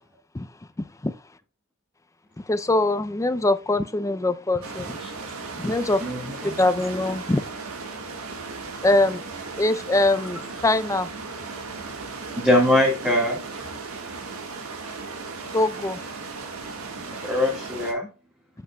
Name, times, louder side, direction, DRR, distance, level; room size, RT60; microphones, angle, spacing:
voice 1, 2.5-5.0 5.6-6.0 6.4-7.5 8.8-9.2 9.6-11.1 15.5-16.0, left 2 dB, 15° left, 0.4 m, -22 dB
sound 1, 4.6-17.9, right 4 dB, 80° right, 1.6 m, -36 dB
voice 2, 6.0-6.5 12.4-13.4 17.2-18.1, left 1 dB, 5° right, 1.8 m, -22 dB
8.1 x 7.9 x 2.3 m
head